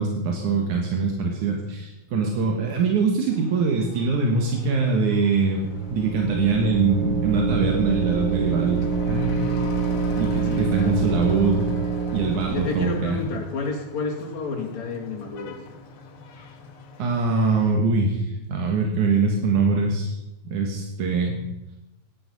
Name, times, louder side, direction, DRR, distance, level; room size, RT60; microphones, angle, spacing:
voice 1, 0.0-9.5 10.2-11.7 12.1-13.2 17.0-20.2 20.4-21.4, right 4 dB, 80° right, 1 dB, 3.0 m, -23 dB
Truck / Accelerating revving vroom, 3.3-17.7, left 3 dB, 85° left, 2.9 m, -40 dB
sound 1, 5.6-13.3, right 6 dB, 50° right, 1.7 m, -26 dB
voice 2, 10.5-11.0 12.5-15.6, left 4 dB, 65° left, 0 dB, 3.5 m, -30 dB
16.0 x 11.0 x 5.4 m, 0.94 s
omnidirectional pair, 3.4 m